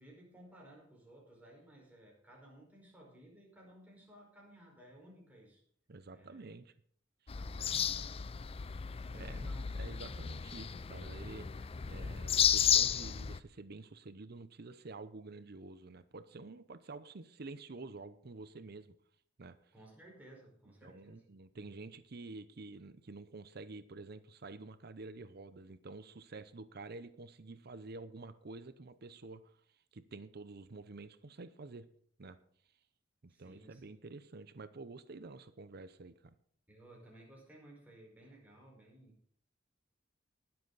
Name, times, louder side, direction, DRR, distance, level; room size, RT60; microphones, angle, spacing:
voice 1, 0.0-5.6 6.1-6.5 7.4-8.2 9.0-10.0 19.7-21.2 33.3-34.0 36.7-39.2, right 1 dB, 10° right, -2 dB, 4.9 m, -57 dB
voice 2, 5.9-6.7 7.2-7.8 8.7-8.8 9.1-19.0 19.4-19.7 20.8-29.6 29.9-31.9 32.2-32.4 33.2-36.3, right 3 dB, 55° right, 13 dB, 0.7 m, -49 dB
sound 1, 7.3-13.4, left 8 dB, 30° left, 0.4 m, -33 dB
20.0 x 7.8 x 4.0 m, 0.63 s
head